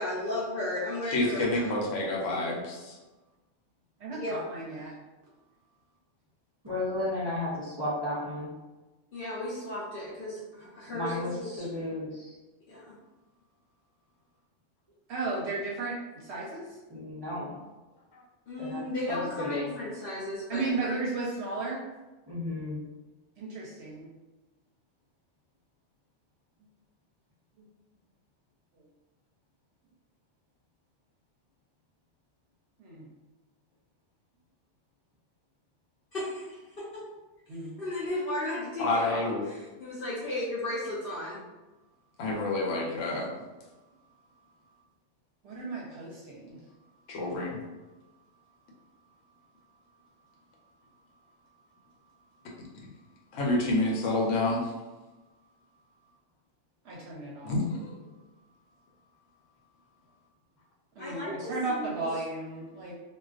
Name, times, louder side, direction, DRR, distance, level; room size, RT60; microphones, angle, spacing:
voice 1, 0.0-1.7 2.2-2.6 4.1-4.4 9.1-11.7 12.7-13.0 18.5-21.0 36.1-37.0 37.8-41.4 61.0-62.1, left 1 dB, 60° left, -7 dB, 0.6 m, -35 dB
voice 2, 1.1-3.0 18.1-18.2 38.8-39.4 42.2-43.3 47.1-47.6 53.3-54.7 57.4-58.0, left 2 dB, 80° left, -2 dB, 1.0 m, -28 dB
voice 3, 4.0-4.9 15.1-16.8 20.5-21.8 23.4-24.1 28.7-28.8 32.8-33.1 37.5-37.7 45.4-46.6 56.8-57.5 61.0-62.9, right 3 dB, 70° right, -5 dB, 0.8 m, -34 dB
voice 4, 6.6-8.5 10.9-12.4 16.9-17.6 18.6-18.8 19.1-19.7 22.3-22.8, left 2 dB, 40° right, -9 dB, 0.3 m, -33 dB
2.4 x 2.2 x 2.3 m, 1.1 s
omnidirectional pair, 1.3 m